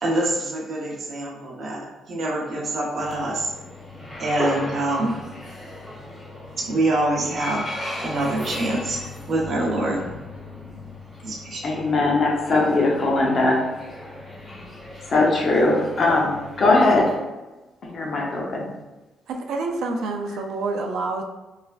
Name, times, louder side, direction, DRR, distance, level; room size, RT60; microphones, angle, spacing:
voice 1, 0.0-3.5 4.2-5.2 6.7-7.7 8.0-9.0 9.3-10.0 11.2-11.7, right 1 dB, 50° right, -2 dB, 0.8 m, -25 dB
sound 1, 3.0-17.1, left 1 dB, 15° left, 1.2 m, -36 dB
voice 2, 11.6-13.6 15.1-17.1 17.8-18.7, left 2 dB, 50° left, -1 dB, 0.7 m, -20 dB
voice 3, 19.3-21.2, right 3 dB, 80° right, 3 dB, 0.3 m, -27 dB
3.2 x 2.1 x 2.3 m, 1.1 s
cardioid pair, 90°, 0 cm